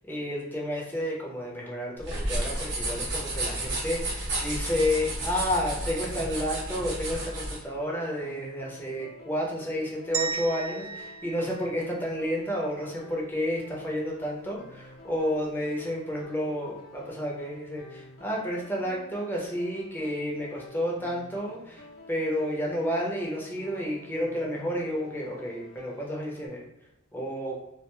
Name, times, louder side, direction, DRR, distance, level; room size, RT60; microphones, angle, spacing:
voice 1, 0.1-26.6 27.1-27.6, equal, 10° left, -3 dB, 0.6 m, -31 dB
sound 1, 2.0-7.6, right 1 dB, 55° right, 0.9 m, -32 dB
sound 2, 7.7-26.5, left 1 dB, 65° left, 0.6 m, -50 dB
sound 3, 10.1-12.4, right 6 dB, 70° right, 0.3 m, -35 dB
2.4 x 2.2 x 2.9 m, 0.88 s
head